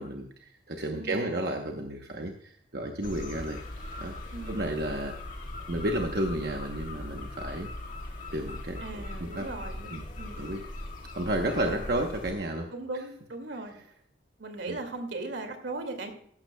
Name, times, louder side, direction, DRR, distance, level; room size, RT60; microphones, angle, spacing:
voice 1, 0.0-3.6 4.0-4.1 4.5-5.2 5.7-7.7 8.3-9.5 9.9-10.0 10.4-10.6 11.2-12.7 14.7-14.8, right 1 dB, 60° right, 3 dB, 1.0 m, -32 dB
voice 2, 0.9-1.4 4.3-4.6 8.8-10.4 11.6-11.9 12.7-13.8 14.4-16.1, right 2 dB, 85° right, 5 dB, 2.3 m, -38 dB
sound 1, 3.0-12.3, left 2 dB, 45° left, 1.9 m, -40 dB
14.5 x 12.5 x 2.3 m, 0.68 s
head